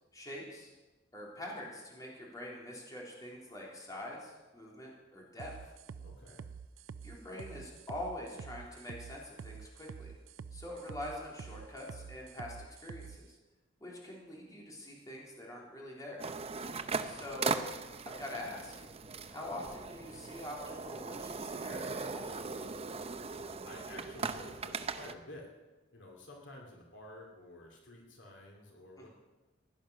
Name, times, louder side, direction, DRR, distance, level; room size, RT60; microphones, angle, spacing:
voice 1, 0.1-0.7 1.1-5.5 7.0-10.1 10.5-12.6 12.8-13.4 13.8-16.2 17.1-17.7 18.1-18.7 19.3-22.3 29.0-29.1, left 1 dB, 20° left, -3 dB, 3.7 m, -44 dB
sound 1, 5.4-13.2, right 6 dB, 85° right, 0.5 m, -47 dB
voice 2, 6.0-6.5 16.6-17.2 23.3-25.5 25.9-29.1, left 1 dB, 70° left, 0 dB, 2.6 m, -52 dB
Skate Board Park Zurich, 16.2-25.1, right 4 dB, 30° right, 0.7 m, -39 dB
16.0 x 10.5 x 6.4 m, 1.1 s
head